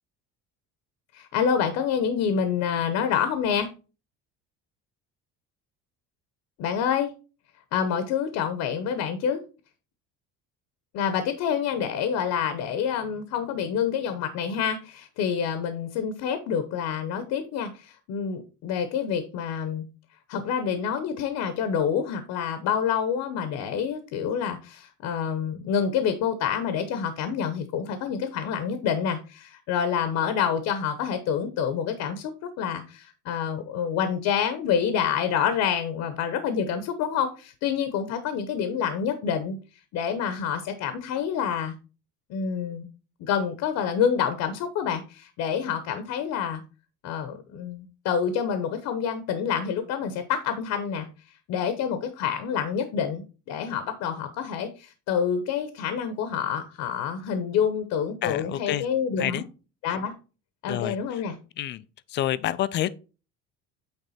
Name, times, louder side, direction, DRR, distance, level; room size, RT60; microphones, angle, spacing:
voice 1, 1.1-3.7 6.6-7.1 7.7-9.4 10.9-19.9 20.3-32.3 32.6-39.6 39.9-41.7 42.3-42.9 43.2-46.6 47.0-51.1 51.5-59.4 59.8-60.1 60.6-61.3, left 7 dB, 65° left, 1.0 m, -27 dB
voice 2, 58.2-58.9 59.2-59.4 60.7-61.2 61.6-61.8 62.1-62.9, left 13 dB, 35° left, 0.4 m, -28 dB
8.9 x 3.4 x 4.2 m
cardioid pair, 160°, 31 cm